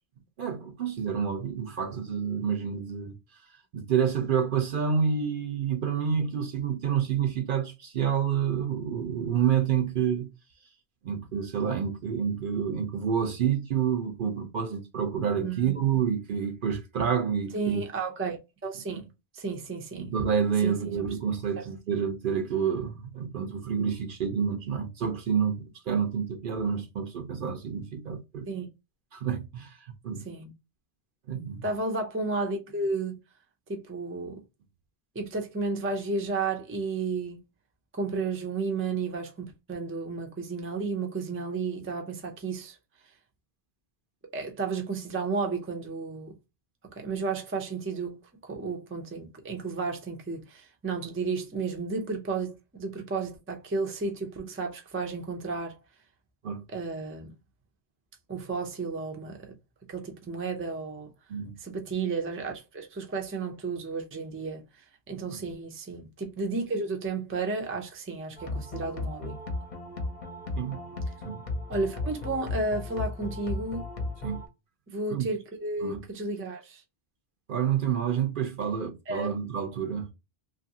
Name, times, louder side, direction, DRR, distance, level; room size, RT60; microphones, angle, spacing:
voice 1, 0.4-3.1 3.7-10.3 11.0-17.8 19.9-28.5 29.1-29.8 30.0-30.2 31.3-31.6 56.4-56.6 61.3-61.5 70.5-70.8 71.2-71.4 74.2-74.4 75.1-75.2 75.8-76.0 77.5-80.1, right 7 dB, 60° right, 0.7 m, -28 dB
voice 2, 15.4-15.8 17.5-19.0 19.3-20.1 20.6-20.9 21.6-21.7 28.5-28.7 30.2-30.5 31.6-33.2 33.7-34.4 35.1-37.4 37.9-42.8 44.3-46.4 46.9-55.8 56.7-57.3 58.3-59.6 59.9-61.1 61.6-69.4 71.7-73.9 74.9-76.8 79.1-79.3, right 3 dB, 20° right, 0.4 m, -32 dB
sound 1, 68.4-74.5, left 2 dB, 50° left, 0.7 m, -35 dB
2.8 x 2.5 x 2.7 m
omnidirectional pair, 1.1 m